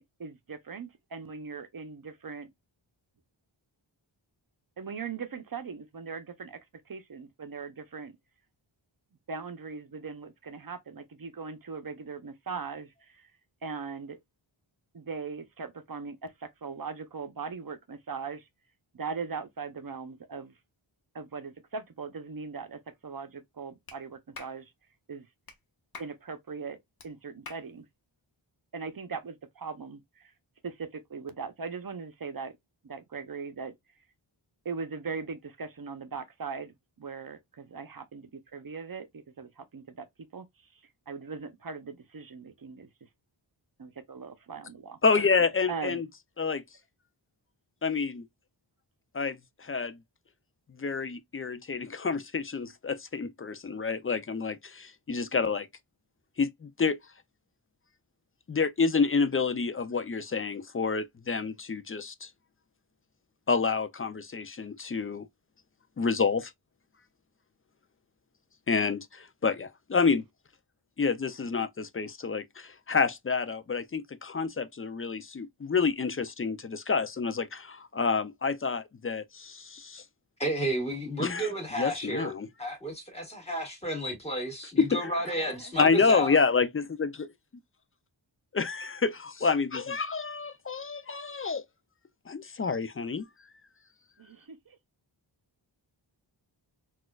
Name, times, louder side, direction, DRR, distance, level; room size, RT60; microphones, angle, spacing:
voice 1, 0.0-2.5 4.8-6.6 6.9-8.2 9.3-13.3 13.6-14.2 14.9-18.5 18.9-20.5 21.1-24.7 25.1-25.3 26.0-26.8 27.0-27.9 28.7-30.3 30.6-32.5 32.8-33.8 34.6-40.1 40.3-40.5 40.7-40.8 41.1-42.9 43.8-45.0 45.7-46.0 85.2-85.8 94.2-94.8, right 5 dB, 45° right, 0.6 m, -40 dB
Clapping, 23.9-24.0 24.3-24.6 25.5-25.6 25.9-26.2 27.0-27.1 27.5-27.7, left 4 dB, 45° left, 0.8 m, -45 dB
voice 2, 45.0-46.1 46.4-46.6 47.8-48.2 49.1-50.0 50.8-55.7 56.4-57.0 58.5-62.3 63.5-65.3 66.0-66.5 68.7-70.2 71.0-80.0 81.2-81.5 81.8-82.5 84.8-85.1 85.8-87.3 88.5-91.6 92.3-93.3, left 5 dB, 30° left, 0.4 m, -28 dB
voice 3, 80.4-82.3 82.6-86.4, right 1 dB, 15° left, 1.8 m, -32 dB
4.1 x 2.4 x 2.3 m
wide cardioid pair, 55°, 48 cm